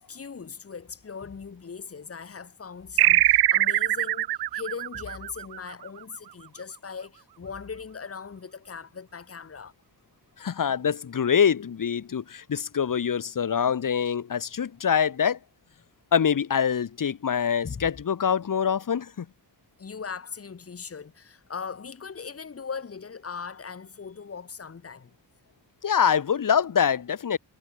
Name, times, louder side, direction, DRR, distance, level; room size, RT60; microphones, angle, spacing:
voice 1, 0.0-9.7 17.6-17.8 19.8-25.2, left 5 dB, 35° left, 4.3 m, -39 dB
sound 1, 3.0-6.0, right 14 dB, 70° right, 0.6 m, -22 dB
voice 2, 10.4-15.4 16.1-19.3 25.8-27.4, left 7 dB, 50° left, 6.0 m, -25 dB
wide cardioid pair, 135°, 40 cm